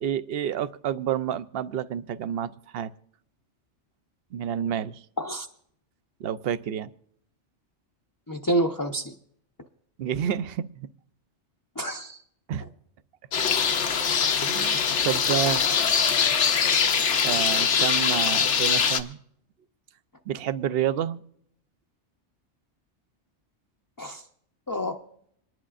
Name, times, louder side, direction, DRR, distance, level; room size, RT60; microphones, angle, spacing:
voice 1, 0.0-2.9 4.3-5.0 6.2-6.9 10.0-10.9 12.5-12.7 14.4-15.7 17.2-19.2 20.3-21.2, right 9 dB, 60° right, 14 dB, 0.8 m, -29 dB
voice 2, 8.3-9.1 11.8-12.2 14.3-14.4 24.0-24.2 24.7-25.0, right 1 dB, 25° left, 3 dB, 0.6 m, -28 dB
sound 1, 13.3-19.0, left 6 dB, 80° left, 1.2 m, -23 dB
27.0 x 11.0 x 2.5 m, 0.70 s
omnidirectional pair, 1.2 m